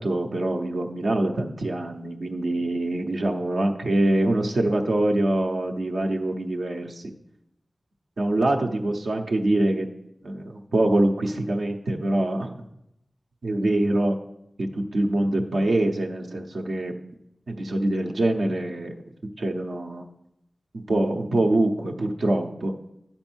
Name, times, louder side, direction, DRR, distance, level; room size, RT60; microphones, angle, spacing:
voice 1, 0.0-7.1 8.2-9.9 10.2-12.5 13.4-14.2 14.6-16.9 17.5-18.9 19.4-20.0 20.9-22.7, right 1 dB, 85° right, 2 dB, 0.9 m, -24 dB
9.9 x 4.4 x 6.2 m, 0.81 s
cardioid pair, 45°, 0 cm